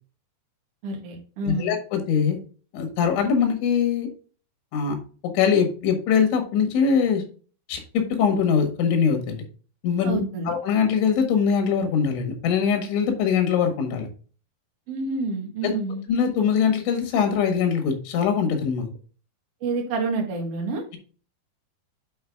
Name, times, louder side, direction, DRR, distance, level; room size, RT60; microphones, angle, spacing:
voice 1, 0.8-1.7 10.0-10.5 14.9-16.0 19.6-20.8, right 3 dB, 55° right, 1 dB, 1.9 m, -28 dB
voice 2, 1.4-2.4 2.7-4.1 4.7-5.0 5.3-7.2 7.7-9.4 9.8-14.1 15.6-15.7 16.1-18.9, left 6 dB, 90° left, 5 dB, 4.1 m, -22 dB
8.6 x 4.6 x 3.6 m, 0.39 s
omnidirectional pair, 5.2 m